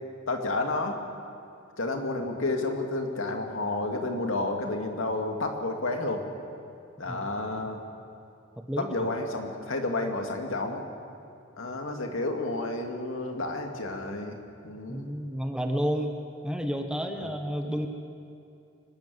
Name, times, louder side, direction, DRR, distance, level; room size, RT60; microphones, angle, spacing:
voice 1, 0.3-1.0 1.8-6.3 7.0-7.8 8.8-10.8 11.6-15.1 17.2-17.3, left 2 dB, 85° left, 3 dB, 2.2 m, -31 dB
voice 2, 14.9-16.2 16.4-17.9, equal, 5° right, 4 dB, 1.1 m, -30 dB
23.5 x 13.0 x 9.4 m, 2.5 s
head